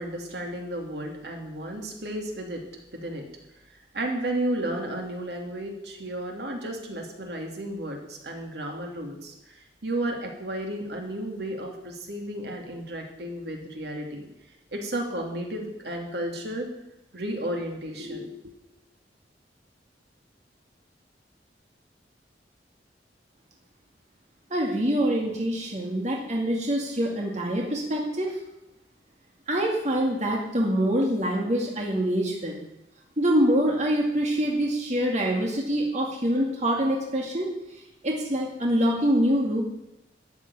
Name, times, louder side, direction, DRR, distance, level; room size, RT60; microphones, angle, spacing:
voice 1, 0.0-2.6 2.9-3.2 3.9-14.3 14.7-16.7 17.1-18.3, right 1 dB, 65° right, 2 dB, 2.8 m, -33 dB
voice 2, 24.5-28.4 29.5-32.5 33.2-39.6, equal, 40° right, -1 dB, 2.3 m, -25 dB
13.5 x 7.4 x 9.9 m, 0.88 s
head